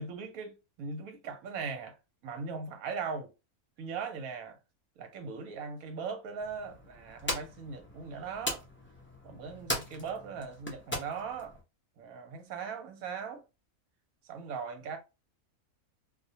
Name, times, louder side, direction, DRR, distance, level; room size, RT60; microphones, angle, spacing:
voice 1, 0.0-1.9 2.2-3.3 3.8-4.6 5.0-8.6 9.2-11.5 12.0-13.4 14.3-15.0, right 5 dB, 75° right, 1.1 m, -39 dB
sound 1, 6.4-11.6, equal, 20° left, 0.3 m, -39 dB
2.5 x 2.1 x 2.7 m
omnidirectional pair, 1.5 m